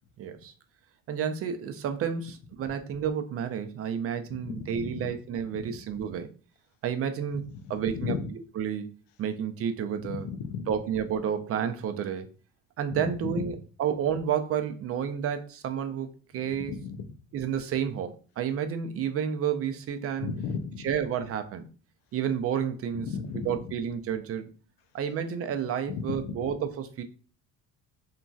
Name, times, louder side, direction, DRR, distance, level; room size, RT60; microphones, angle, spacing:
voice 1, 0.2-0.5 1.1-6.3 6.8-7.4 7.7-8.1 8.6-8.9 9.2-10.2 10.7-12.3 12.8-16.7 17.3-20.3 20.8-21.7 22.1-23.1 23.5-24.5 24.9-27.0, right 8 dB, 40° right, 9 dB, 0.4 m, -30 dB
voice 2, 4.3-5.2 5.5-5.8 7.3-8.3 10.0-10.7 13.0-13.5 16.5-17.0 20.2-20.9 22.9-23.7 25.9-26.5, left 6 dB, 85° left, 9 dB, 0.5 m, -35 dB
2.9 x 2.6 x 2.3 m, 0.37 s
cardioid pair, 110°, 35 cm